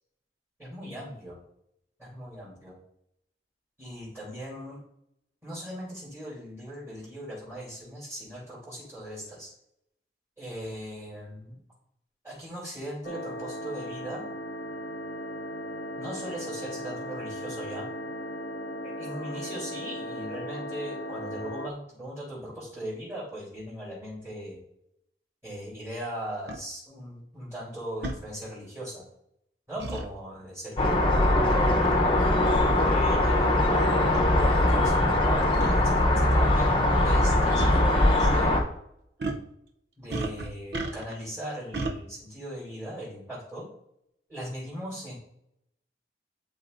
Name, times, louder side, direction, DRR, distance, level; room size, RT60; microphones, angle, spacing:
voice 1, 0.6-1.4 2.0-2.7 3.8-4.8 5.4-9.5 10.4-11.6 12.2-14.2 16.0-17.9 18.8-24.6 25.4-29.0 29.7-33.5 34.3-38.6 40.0-43.6 44.3-45.1, right 1 dB, 15° right, -10 dB, 2.8 m, -39 dB
sound 1, 13.0-21.7, equal, 65° left, 0.7 m, -37 dB
sound 2, 26.5-26.6 28.0-28.2 29.8-30.1 31.8-32.0 32.9-33.0 33.8-33.9 34.1-34.3 35.6-35.7 37.1-37.3 37.6-37.7 39.2-39.5 40.1-41.2 41.7-42.0, right 2 dB, 70° right, 0.7 m, -33 dB
sound 3, 30.8-38.6, left 1 dB, 30° left, 0.9 m, -21 dB
11.5 x 4.1 x 2.6 m, 0.77 s
head